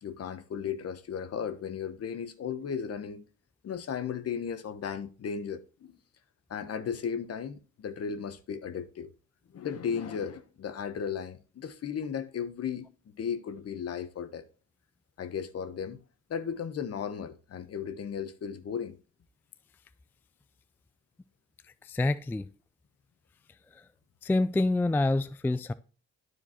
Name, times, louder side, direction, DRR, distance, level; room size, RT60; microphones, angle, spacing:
voice 1, 0.0-3.2 3.6-6.0 6.5-9.1 9.5-12.9 13.2-14.4 15.2-16.0 16.3-19.0, left 7 dB, 55° left, 1.1 m, -35 dB
voice 2, 21.8-22.5 24.2-25.7, left 2 dB, 5° left, 0.3 m, -27 dB
12.0 x 4.7 x 3.0 m
cardioid pair, 90°, 30 cm